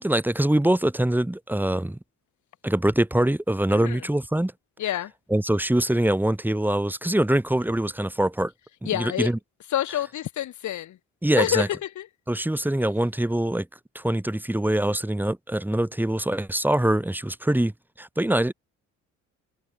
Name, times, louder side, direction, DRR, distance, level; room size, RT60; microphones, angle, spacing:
voice 1, 0.0-2.0 2.6-4.5 5.3-8.5 8.8-9.4 11.2-11.7 12.3-13.7 13.9-17.7 18.0-18.5, right 1 dB, 5° right, 2.3 m, -23 dB
voice 2, 3.7-4.1 4.8-5.1 8.8-9.3 9.7-11.0 11.4-12.1, left 12 dB, 70° left, 2.6 m, -28 dB
cardioid pair, 90°, 30 cm